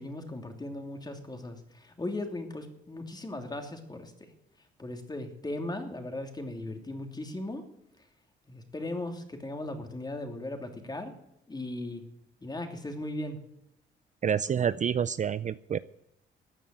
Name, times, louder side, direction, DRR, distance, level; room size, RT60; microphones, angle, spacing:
voice 1, 0.0-4.1 4.8-7.6 8.5-11.1 11.5-12.0 12.4-13.4, left 1 dB, 20° left, 4 dB, 3.0 m, -37 dB
voice 2, 14.2-15.8, right 8 dB, 40° right, 15 dB, 0.5 m, -28 dB
15.0 x 9.2 x 9.2 m, 0.80 s
cardioid pair, 90°, 20 cm